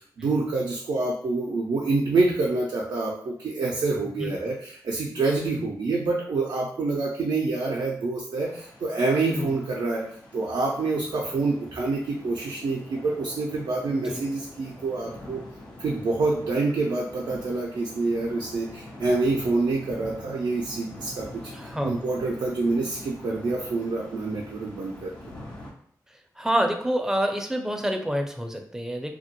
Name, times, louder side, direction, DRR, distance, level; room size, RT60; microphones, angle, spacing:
voice 1, 0.0-10.0 10.3-15.4 15.8-21.3 21.6-25.1, right 3 dB, 80° right, -2 dB, 0.4 m, -27 dB
sound 1, 8.3-25.7, left 1 dB, 85° left, 0.6 m, -44 dB
voice 2, 13.9-14.2 21.5-22.0 26.4-29.1, equal, 5° right, 4 dB, 0.4 m, -28 dB
2.2 x 2.1 x 2.8 m, 0.63 s
cardioid pair, 45°, 7 cm